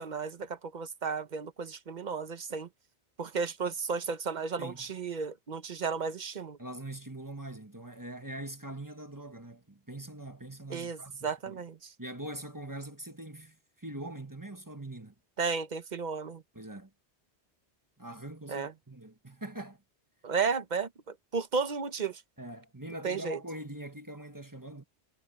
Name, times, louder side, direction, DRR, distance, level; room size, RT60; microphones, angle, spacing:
voice 1, 0.0-2.7 3.2-6.6 10.7-11.9 15.4-16.4 18.5-18.7 20.2-22.2 23.0-23.4, right 5 dB, 45° right, 1.1 m, -33 dB
voice 2, 6.6-11.6 12.0-15.1 16.5-16.9 18.0-19.8 22.4-24.8, right 1 dB, 15° right, 1.5 m, -43 dB
omnidirectional pair, 1.1 m